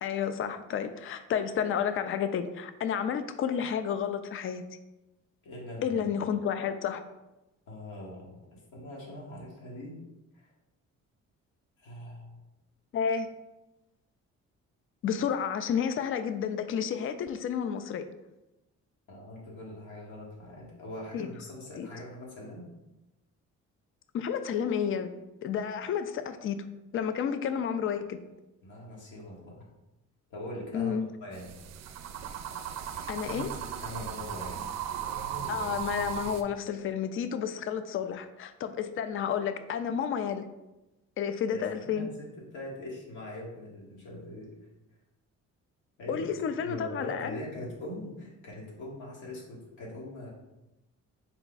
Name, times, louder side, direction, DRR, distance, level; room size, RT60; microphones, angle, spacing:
voice 1, 0.0-4.6 5.8-7.0 12.9-13.3 15.0-18.0 21.1-21.3 21.8-21.9 24.1-25.1 25.4-26.6 26.9-28.2 30.7-31.1 33.1-33.5 35.5-40.4 41.2-42.1 46.1-47.4, left 7 dB, 45° left, 10 dB, 0.4 m, -31 dB
voice 2, 5.4-6.2 7.7-10.0 10.3-10.5 11.8-12.4 19.1-22.7 28.6-29.7 30.3-30.9 31.2-31.5 33.8-34.6 41.5-44.5 46.0-46.3 46.6-50.3, left 1 dB, 80° left, -4 dB, 1.4 m, -42 dB
sound 1, 31.3-36.4, right 8 dB, 60° right, 0.4 m, -36 dB
4.5 x 2.3 x 3.9 m, 0.97 s
cardioid pair, 90°, 30 cm